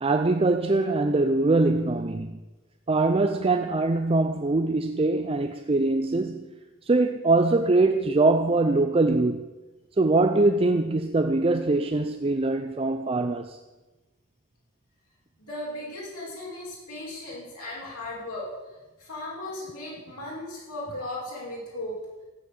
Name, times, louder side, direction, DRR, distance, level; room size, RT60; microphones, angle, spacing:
voice 1, 0.0-2.4 2.9-6.5 6.9-9.5 10.0-13.6, right 2 dB, 25° right, 0.5 m, -23 dB
voice 2, 15.5-18.5 19.0-22.0, left 1 dB, 90° left, 5.6 m, -36 dB
15.0 x 7.5 x 8.5 m
head